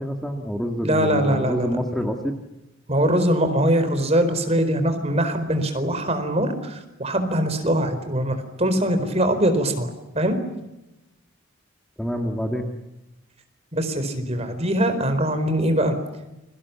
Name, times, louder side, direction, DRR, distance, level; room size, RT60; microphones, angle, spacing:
voice 1, 0.0-2.4 12.0-12.6, equal, ahead, 3 dB, 2.1 m, -27 dB
voice 2, 0.8-1.8 2.9-9.9 10.1-10.4 13.7-16.0, right 1 dB, 30° right, 9 dB, 4.4 m, -22 dB
29.5 x 24.0 x 7.3 m, 0.95 s
head